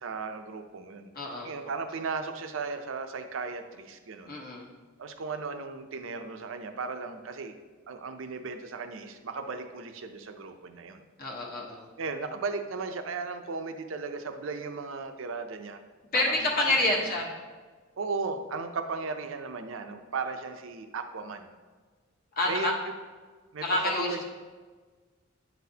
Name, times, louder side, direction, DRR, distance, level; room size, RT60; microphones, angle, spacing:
voice 1, 0.0-1.1 1.4-4.4 5.0-7.6 7.9-11.0 12.0-15.8 16.1-17.1 18.0-21.5 22.5-22.7 23.5-23.6 24.0-24.2, right 4 dB, 75° right, 7 dB, 0.5 m, -36 dB
voice 2, 1.1-1.5 4.3-4.7 11.2-11.9 16.1-17.3 22.4-22.7 23.6-24.2, left 2 dB, 50° left, -1 dB, 1.1 m, -28 dB
9.1 x 4.0 x 2.8 m, 1.4 s
head